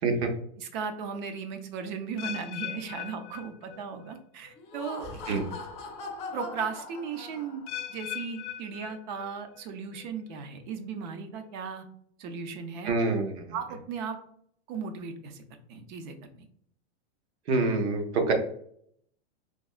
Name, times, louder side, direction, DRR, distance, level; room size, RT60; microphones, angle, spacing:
voice 1, 0.6-5.2 6.3-11.9 12.2-13.0 13.5-14.2 14.7-15.4 15.7-16.5, right 6 dB, 45° right, 7 dB, 0.5 m, -36 dB
sound 1, 2.2-4.2 4.5-4.9 5.5-5.6 7.7-9.6 9.9-10.4 11.0-11.1, left 12 dB, 90° left, 0.5 m, -40 dB
Laughter, 4.5-7.8, left 3 dB, 20° left, 0.5 m, -41 dB
voice 2, 12.8-13.5 17.5-18.3, right 3 dB, 70° right, 4 dB, 0.8 m, -26 dB
3.4 x 2.0 x 2.3 m, 0.65 s
supercardioid pair, 155°, 34 cm